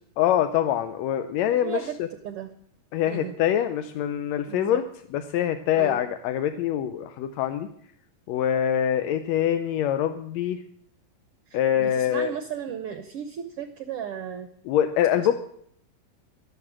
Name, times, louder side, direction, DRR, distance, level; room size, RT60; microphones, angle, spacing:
voice 1, 0.2-1.8 2.9-4.8 5.1-7.7 8.3-10.6 11.5-12.3 14.7-15.3, left 10 dB, 75° left, 9 dB, 1.7 m, -24 dB
voice 2, 1.5-1.9 2.2-2.5 3.1-3.4 4.5-4.8 5.7-6.0 11.5-14.5 15.2-15.3, right 8 dB, 75° right, 8 dB, 1.4 m, -35 dB
12.0 x 11.0 x 7.4 m, 0.68 s
omnidirectional pair, 3.5 m